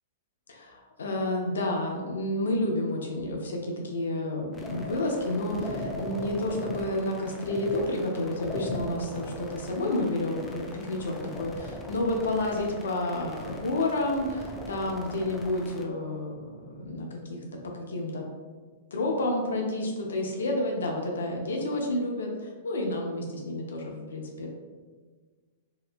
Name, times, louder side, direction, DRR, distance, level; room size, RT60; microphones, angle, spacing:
voice 1, 0.5-18.2 18.9-24.5, left 1 dB, 85° left, 1 dB, 0.4 m, -30 dB
sound 1, 4.5-15.8, left 1 dB, 15° left, 0.4 m, -39 dB
2.8 x 2.1 x 2.4 m, 1.4 s
hypercardioid pair, 120°, 0 cm